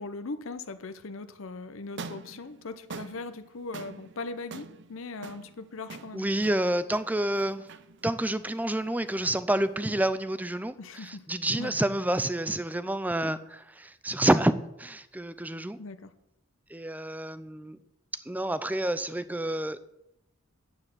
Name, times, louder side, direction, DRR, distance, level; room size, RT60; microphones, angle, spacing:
voice 1, 0.0-6.3 10.8-11.3 11.6-11.7 15.8-16.1, left 3 dB, 70° left, 11 dB, 0.7 m, -39 dB
sound 1, 1.8-10.1, right 4 dB, 55° right, 0.6 m, -46 dB
voice 2, 6.1-7.6 8.0-14.5 14.8-15.8 16.7-17.8 18.3-19.8, right 1 dB, 10° right, 14 dB, 0.4 m, -28 dB
9.8 x 8.6 x 7.7 m, 0.87 s
head